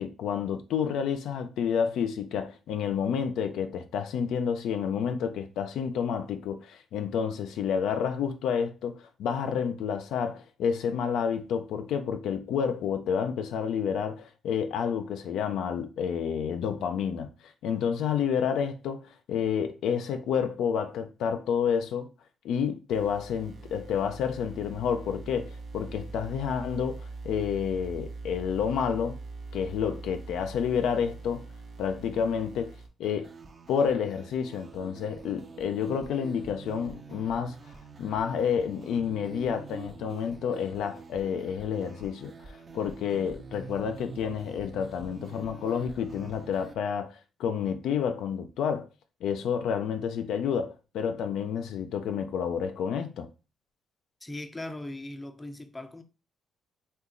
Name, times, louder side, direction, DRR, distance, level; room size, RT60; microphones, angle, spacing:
voice 1, 0.0-22.1 22.4-29.2 29.5-31.4 31.8-33.3 33.7-37.6 38.0-48.9 49.2-53.3, left 7 dB, 80° left, 0.4 m, -29 dB
sound 1, 22.9-32.9, right 3 dB, 60° right, 0.8 m, -42 dB
sound 2, 33.0-46.7, right 4 dB, 40° right, 0.5 m, -46 dB
voice 2, 54.2-56.0, left 1 dB, 15° left, 0.5 m, -39 dB
2.8 x 2.2 x 3.7 m
cardioid pair, 90°, 0 cm